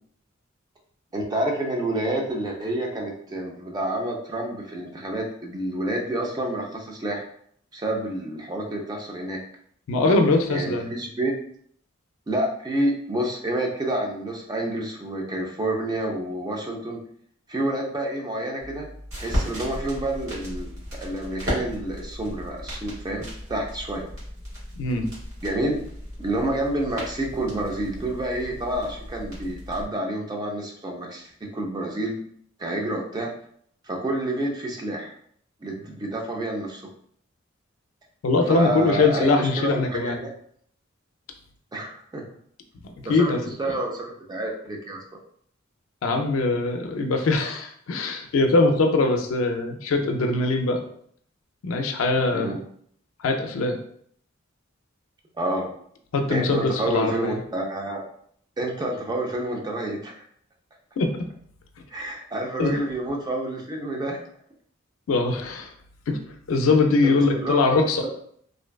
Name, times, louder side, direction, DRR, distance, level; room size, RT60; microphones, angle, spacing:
voice 1, 1.1-7.3 7.7-9.4 10.5-11.4 12.3-17.0 17.5-18.9 19.2-20.7 21.0-24.0 25.4-25.8 26.2-32.2 32.6-33.3 33.8-35.1 35.6-36.9 38.5-40.3 41.7-42.2 43.0-45.0 52.3-52.6 55.4-55.7 56.3-58.0 58.6-60.2 61.9-64.2 67.0-67.6 68.0-68.1, right 1 dB, 20° right, 0 dB, 0.4 m, -28 dB
voice 2, 9.9-10.9 24.8-25.0 38.2-40.2 43.1-43.4 46.0-50.8 51.6-52.5 53.2-53.8 56.1-57.4 61.0-61.1 62.6-62.7 65.1-65.7 66.1-66.2 66.5-68.0, left 3 dB, 70° left, 4 dB, 0.4 m, -22 dB
sound 1, 18.6-29.9, equal, 80° right, 1.3 m, -35 dB
2.5 x 2.1 x 2.2 m, 0.64 s
head